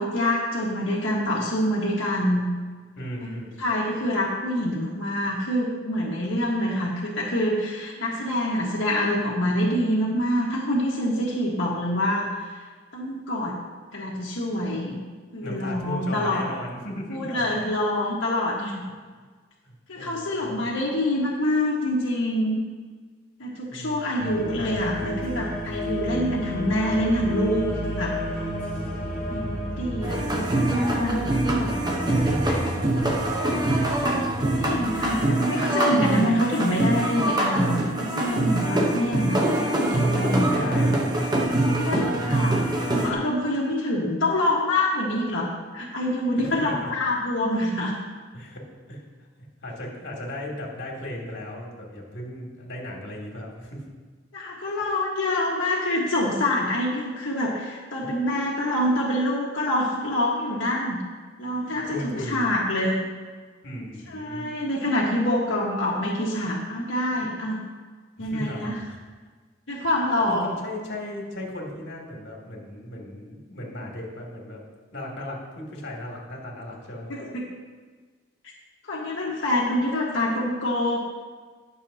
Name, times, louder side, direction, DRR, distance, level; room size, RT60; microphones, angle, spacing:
voice 1, 0.0-2.5 3.2-12.6 12.9-13.5 13.9-15.0 15.3-16.5 17.1-18.8 19.9-22.6 23.4-28.1 29.3-32.1 34.6-40.5 40.8-40.9 41.6-42.6 42.9-47.9 54.3-61.0 61.4-63.0 64.1-67.6 68.2-68.7 69.7-70.5 77.1-77.4 78.9-81.0, left 1 dB, 85° left, -5 dB, 1.5 m, -26 dB
voice 2, 3.0-3.6 15.4-17.5 19.6-20.7 23.7-24.1 32.1-33.2 33.4-33.8 40.2-41.0 41.6-42.4 46.4-46.9 48.3-49.0 49.6-53.9 58.0-58.1 61.6-62.4 63.6-64.5 68.2-69.0 70.3-74.6 74.9-77.1, left 1 dB, 60° left, -2 dB, 2.6 m, -36 dB
sound 1, 24.2-35.1, equal, 5° left, 2.0 m, -32 dB
sound 2, 30.0-43.1, right 1 dB, 20° right, 1.0 m, -24 dB
20.5 x 7.0 x 2.8 m, 1.5 s
head